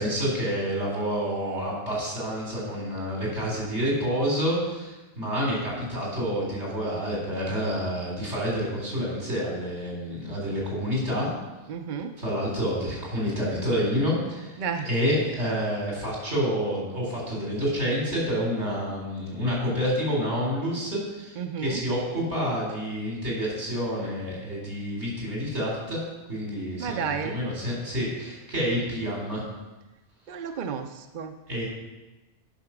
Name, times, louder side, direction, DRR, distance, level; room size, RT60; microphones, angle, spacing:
voice 1, 0.0-11.3 12.2-26.0 26.3-29.4 31.5-31.6, equal, 75° right, -4 dB, 4.4 m, -28 dB
voice 2, 11.7-12.1 14.6-14.9 21.4-21.8 26.8-27.4 30.3-31.3, right 6 dB, 55° right, 6 dB, 0.7 m, -32 dB
10.5 x 6.0 x 6.0 m, 1.1 s
omnidirectional pair, 1.2 m